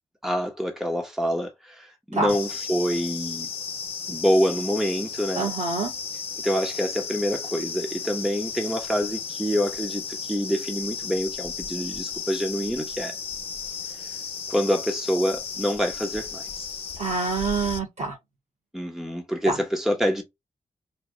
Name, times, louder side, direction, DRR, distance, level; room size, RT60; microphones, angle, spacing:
voice 1, 0.2-3.5 4.1-5.5 6.4-13.1 14.5-16.6 18.7-20.2, equal, 5° right, 0.8 m, -26 dB
sound 1, 2.3-17.8, left 6 dB, 50° left, 0.9 m, -34 dB
voice 2, 5.4-5.9 17.0-18.2 19.5-19.6, right 3 dB, 60° right, 2.3 m, -26 dB
4.7 x 2.3 x 3.1 m
cardioid pair, 100°, 12 cm